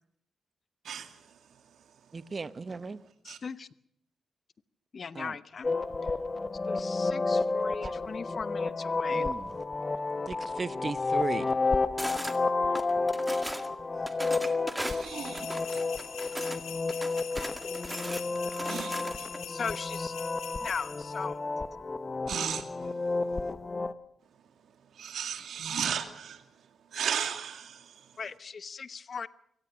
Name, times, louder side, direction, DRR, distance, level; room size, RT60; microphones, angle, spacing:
voice 1, 0.8-1.4 3.3-3.4 14.7-16.0 18.7-19.5 22.3-22.9 24.9-26.5 26.9-28.1, right 8 dB, 80° right, 8 dB, 2.2 m, -36 dB
voice 2, 2.1-3.0 5.1-5.3 7.8-7.9 9.1-9.5 10.3-11.4, right 4 dB, 40° right, 15 dB, 0.9 m, -36 dB
voice 3, 3.2-3.7 4.9-5.7 6.7-9.3 17.5-17.6 19.5-20.1 20.6-21.4 28.2-29.3, left 5 dB, 55° left, 16 dB, 0.9 m, -38 dB
sound 1, 5.6-23.9, left 3 dB, 35° left, 1.2 m, -31 dB
sound 2, 12.0-12.4 12.7-13.7 14.1-16.6 16.9-19.4, right 1 dB, 10° right, 2.0 m, -38 dB
sound 3, 15.0-21.2, left 8 dB, 85° left, 2.5 m, -44 dB
23.5 x 18.0 x 6.2 m, 0.71 s
cardioid pair, 65°, 0 cm